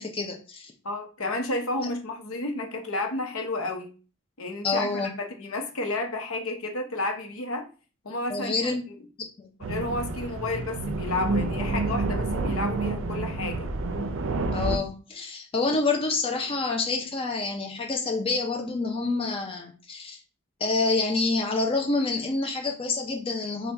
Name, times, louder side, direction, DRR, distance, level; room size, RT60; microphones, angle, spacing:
voice 1, 0.0-0.7 1.8-1.9 4.6-5.1 8.3-8.8 14.5-20.2 20.6-23.7, left 3 dB, 25° left, 3 dB, 0.5 m, -27 dB
voice 2, 0.8-3.9 4.4-7.7 8.0-9.0 9.6-13.7, left 2 dB, 85° left, 4 dB, 0.8 m, -31 dB
sound 1, 9.6-14.8, right 2 dB, 65° right, 0.5 m, -29 dB
4.3 x 2.3 x 3.3 m, 0.37 s
head